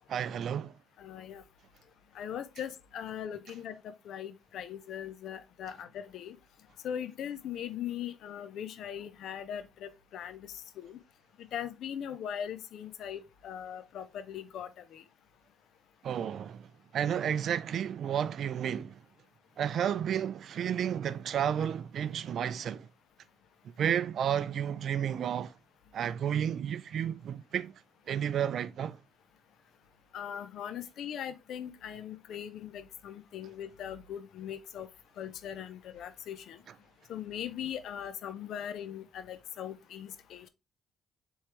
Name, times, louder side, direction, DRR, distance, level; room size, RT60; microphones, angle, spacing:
voice 1, 0.1-0.7 16.0-16.7 16.9-19.0 19.6-22.9 23.8-25.5 25.9-27.7 28.1-29.0, right 9 dB, 65° right, 0.3 m, -31 dB
voice 2, 1.0-1.4 2.1-6.4 6.8-11.0 11.5-15.0 30.1-34.9 35.2-36.6 37.1-40.5, left 9 dB, 75° left, 0.4 m, -40 dB
4.4 x 3.6 x 2.9 m
cardioid pair, 90°, 0 cm